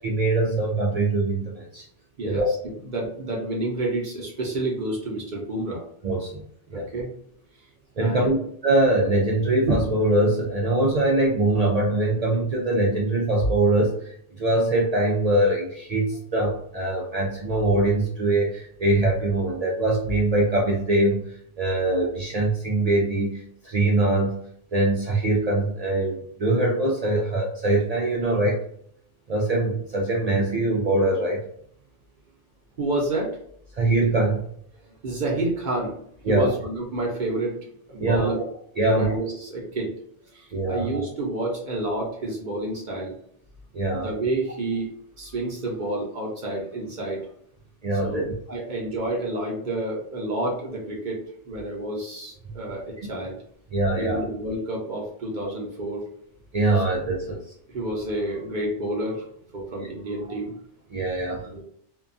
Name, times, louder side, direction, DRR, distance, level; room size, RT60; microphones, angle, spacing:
voice 1, 0.0-1.9 2.2-2.5 6.0-6.4 6.7-6.9 8.0-8.4 8.6-28.6 29.3-31.5 33.7-34.4 36.2-36.5 38.0-38.3 38.8-39.1 40.5-40.9 43.7-44.1 47.8-48.3 53.7-54.2 56.5-57.3 60.9-61.5, right 2 dB, 75° right, -2 dB, 0.3 m, -23 dB
voice 2, 2.2-2.6 2.8-5.8 6.7-7.1 8.0-8.4 32.8-33.4 35.0-36.0 36.3-37.6 37.9-38.4 38.8-39.9 40.3-43.1 44.0-47.2 48.0-53.4 53.9-56.0 57.1-57.3 57.7-59.2 59.5-60.5 61.5-61.6, right 2 dB, 50° right, -3 dB, 0.7 m, -29 dB
2.7 x 2.3 x 2.5 m, 0.66 s
omnidirectional pair, 1.2 m